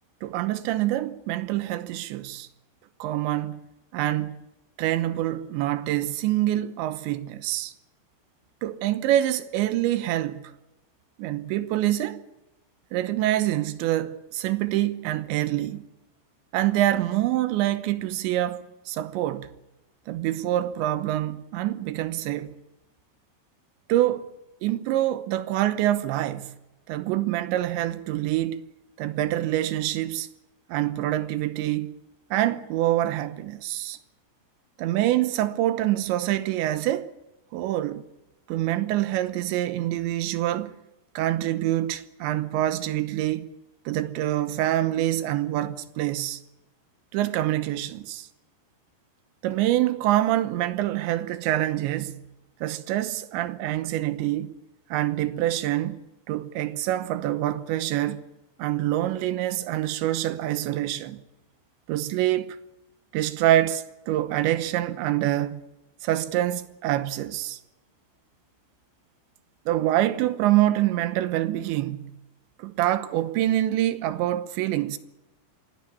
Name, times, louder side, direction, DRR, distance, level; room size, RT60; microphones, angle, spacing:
voice 1, 0.2-2.5 3.0-3.6 3.9-4.4 4.8-7.7 8.6-10.5 11.2-12.2 12.9-15.8 16.5-19.5 20.1-22.5 23.9-24.3 24.6-26.5 26.9-28.6 29.0-30.3 30.7-31.9 32.3-34.0 34.8-37.1 37.5-38.0 38.5-40.7 41.1-43.5 43.9-46.4 47.1-48.3 49.4-52.2 52.6-54.5 54.9-56.0 56.3-58.2 58.6-61.2 61.9-62.6 63.1-65.6 66.0-67.6 69.7-72.1 72.6-75.0, right 14 dB, 80° right, 3.2 m, -26 dB
25.0 x 16.0 x 8.4 m
omnidirectional pair, 5.2 m